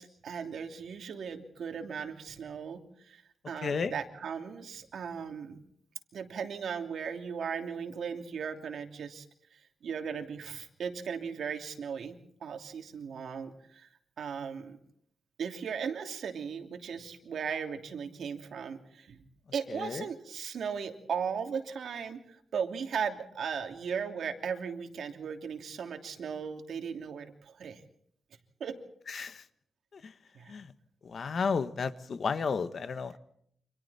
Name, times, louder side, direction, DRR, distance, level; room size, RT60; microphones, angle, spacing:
voice 1, 0.0-5.6 6.1-9.3 9.5-13.9 14.2-14.8 15.4-19.2 19.5-27.8 28.6-28.8 30.3-30.5, right 6 dB, 75° right, 5 dB, 2.9 m, -37 dB
voice 2, 3.6-3.9 19.7-20.1 29.1-29.4 29.9-30.1 30.5-30.7 31.0-33.2, left 5 dB, 50° left, 12 dB, 1.4 m, -33 dB
29.5 x 26.5 x 4.3 m, 0.68 s
wide cardioid pair, 145°, 0 cm